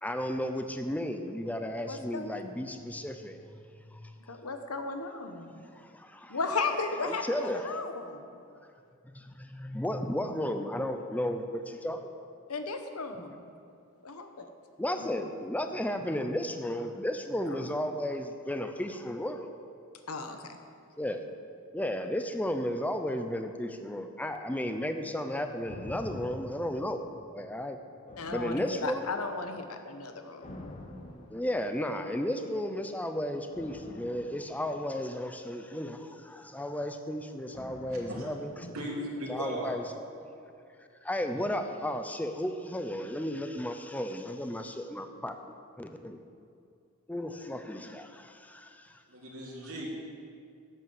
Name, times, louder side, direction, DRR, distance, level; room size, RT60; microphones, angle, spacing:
voice 1, 0.0-3.4 3.9-4.1 5.7-6.4 7.0-7.8 9.0-12.2 14.8-19.5 21.0-21.2 21.7-27.0 27.3-27.8 28.3-29.1 31.3-38.5 39.3-39.8 41.0-46.2 47.1-48.9, left 1 dB, 5° left, 7 dB, 0.6 m, -34 dB
voice 2, 1.9-2.4 4.3-5.6 6.3-8.4 12.5-13.4 14.0-14.5 15.0-15.1 17.5-17.7 20.1-20.6 28.2-30.5 38.6-38.7, left 3 dB, 85° left, 7 dB, 1.1 m, -35 dB
sound 1, 25.7-27.6 28.1-29.3 30.4-32.1 33.5-35.9 37.5-39.7 40.0-40.1, left 1 dB, 30° left, 0.9 m, -48 dB
voice 3, 37.9-38.3 38.7-39.7 40.2-40.4 49.1-49.9, equal, 70° right, -4 dB, 2.8 m, -37 dB
11.0 x 8.4 x 7.3 m, 2.4 s
head